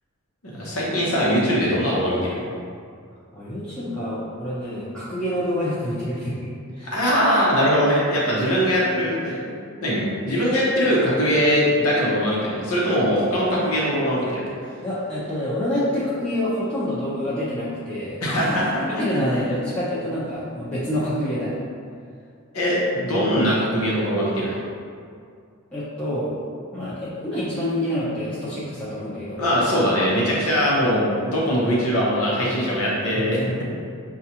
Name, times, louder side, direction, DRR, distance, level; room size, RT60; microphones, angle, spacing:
voice 1, 0.5-2.4 6.8-9.5 9.8-14.4 18.2-18.8 22.5-24.6 29.4-33.6, equal, 85° left, -6 dB, 0.9 m, -21 dB
voice 2, 3.3-6.5 6.8-6.9 14.8-18.2 18.5-21.6 23.1-23.3 25.7-26.3 26.7-29.5 33.3-33.6, left 1 dB, 5° left, -12 dB, 0.7 m, -27 dB
6.4 x 2.4 x 2.8 m, 2.3 s
head